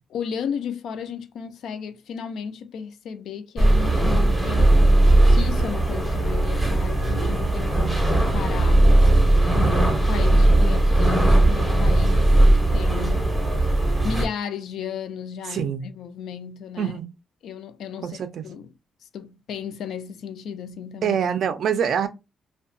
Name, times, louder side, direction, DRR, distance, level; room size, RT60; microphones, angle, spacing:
voice 1, 0.1-9.2 9.5-12.3 12.6-13.3 13.6-13.7 14.0-16.9 17.4-18.7 19.1-21.2, left 7 dB, 65° left, 0.3 m, -34 dB
sound 1, 3.6-14.3, right 1 dB, 5° right, 0.6 m, -18 dB
voice 2, 15.5-15.9 16.8-17.1 18.0-18.4 21.0-22.1, right 8 dB, 50° right, 0.4 m, -25 dB
2.7 x 2.2 x 2.5 m
cardioid pair, 180°, 0 cm